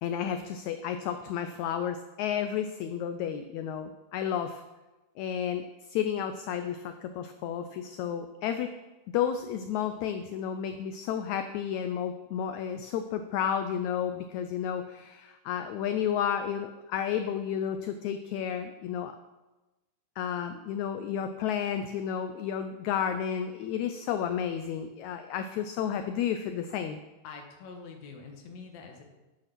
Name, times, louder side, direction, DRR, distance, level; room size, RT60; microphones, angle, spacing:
voice 1, 0.0-4.6 5.2-8.7 9.1-19.2 20.2-27.0, left 8 dB, 85° left, 8 dB, 1.6 m, -32 dB
voice 2, 27.2-29.0, left 4 dB, 60° left, 2 dB, 2.4 m, -45 dB
9.0 x 8.6 x 6.0 m, 1.1 s
omnidirectional pair, 3.9 m